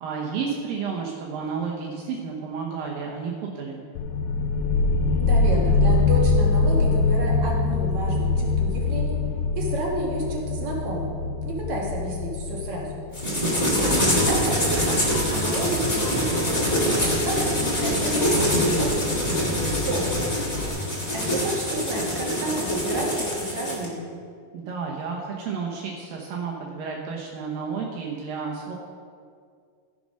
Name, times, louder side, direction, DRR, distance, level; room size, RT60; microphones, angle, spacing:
voice 1, 0.0-3.9 13.3-13.8 24.5-28.8, right 5 dB, 75° right, -2 dB, 2.7 m, -31 dB
sound 1, 4.0-15.4, left 3 dB, 80° left, 2.2 m, -24 dB
voice 2, 5.2-9.2 9.5-11.2 11.4-13.0 13.8-16.7 17.2-20.3 21.1-24.1, right 1 dB, 55° right, -2 dB, 2.7 m, -31 dB
sound 2, 13.1-23.9, equal, 20° left, 1.1 m, -24 dB
sound 3, 13.5-20.7, left 2 dB, 50° left, 2.5 m, -33 dB
15.0 x 6.3 x 5.4 m, 2.1 s
omnidirectional pair, 4.1 m